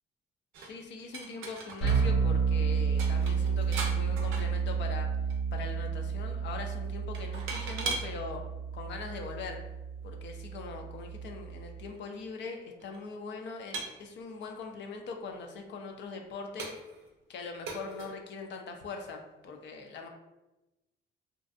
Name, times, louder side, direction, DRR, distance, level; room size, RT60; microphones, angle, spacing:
sound 1, 0.5-2.1 2.4-2.5 2.8-5.0 5.3-5.6 7.1-8.1 9.0-9.1 11.6-11.7 11.9-12.0 12.8-13.0 13.7-14.7 15.3-15.4 15.9-16.0 16.6-17.1 17.7-18.2, right 3 dB, 90° right, 0.5 m, -39 dB
voice 1, 0.6-5.1 5.5-8.4 8.7-9.6 10.0-16.7 17.3-20.1, left 4 dB, 65° left, 3 dB, 0.4 m, -41 dB
sound 2, 1.8-11.8, right 6 dB, 85° left, 1.3 m, -31 dB
2.5 x 2.2 x 2.4 m, 1.0 s
cardioid pair, 90°, 20 cm